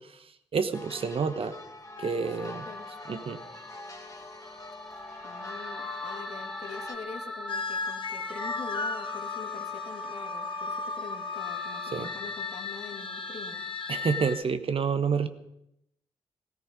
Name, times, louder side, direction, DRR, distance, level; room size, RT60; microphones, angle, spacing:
voice 1, 0.5-1.6 2.0-2.7 3.1-3.4 11.9-12.1 13.9-15.3, right 5 dB, 50° right, 11 dB, 1.2 m, -28 dB
sound 1, 0.7-6.9, left 1 dB, 25° left, 2.5 m, -46 dB
sound 2, 2.0-6.3 7.5-14.4, left 5 dB, 45° left, 1.1 m, -38 dB
voice 2, 2.3-2.9 5.2-13.6, left 5 dB, 60° left, 4 dB, 2.2 m, -44 dB
sound 3, 2.3-14.3, left 2 dB, 5° left, 2.5 m, -40 dB
17.0 x 14.5 x 5.3 m, 0.81 s
hypercardioid pair, 40°, 12 cm